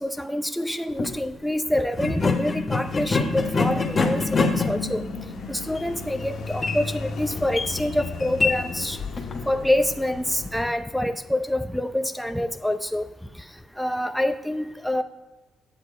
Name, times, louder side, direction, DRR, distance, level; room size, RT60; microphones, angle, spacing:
voice 1, 0.0-5.0 5.5-9.0 9.5-13.0 13.8-15.0, left 1 dB, ahead, 8 dB, 0.6 m, -26 dB
sound 1, 0.9-1.1 1.9-9.4, left 3 dB, 35° left, 1.4 m, -26 dB
sound 2, 2.8-10.7, left 4 dB, 75° left, 1.5 m, -37 dB
8.6 x 7.3 x 4.9 m, 1.1 s
cardioid pair, 90°, 0 cm